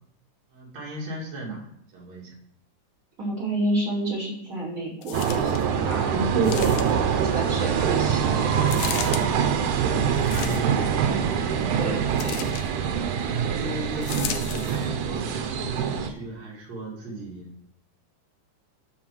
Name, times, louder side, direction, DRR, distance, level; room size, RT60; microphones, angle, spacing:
voice 1, 0.5-2.4 9.7-11.1 13.4-17.7, right 1 dB, 60° right, -3 dB, 3.8 m, -36 dB
voice 2, 3.2-6.7 7.2-8.5 11.7-12.4, right 2 dB, 25° right, -4 dB, 4.7 m, -28 dB
sound 1, 5.0-5.7 6.4-7.1 8.7-9.2 10.2-10.9 12.2-12.7 14.0-14.9 15.6-15.7, left 10 dB, 80° left, 2.2 m, -35 dB
sound 2, 5.1-16.1, right 7 dB, 85° right, 2.5 m, -24 dB
12.0 x 4.8 x 6.3 m, 0.71 s
omnidirectional pair, 3.5 m